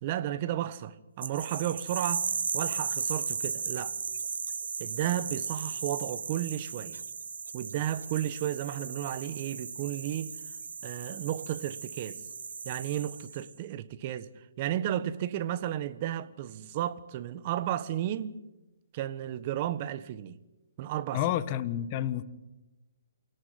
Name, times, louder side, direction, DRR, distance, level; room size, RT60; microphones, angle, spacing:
voice 1, 0.0-3.9 4.8-7.0 7.5-10.3 10.8-12.2 12.6-14.3 14.6-18.3 18.9-20.4 20.8-21.2, right 12 dB, 35° right, 1.4 m, -33 dB
sound 1, 1.2-13.5, right 5 dB, 75° right, 1.6 m, -36 dB
voice 2, 21.1-22.2, left 11 dB, 30° left, 1.5 m, -29 dB
28.0 x 18.5 x 9.4 m
hypercardioid pair, 155°, 0 cm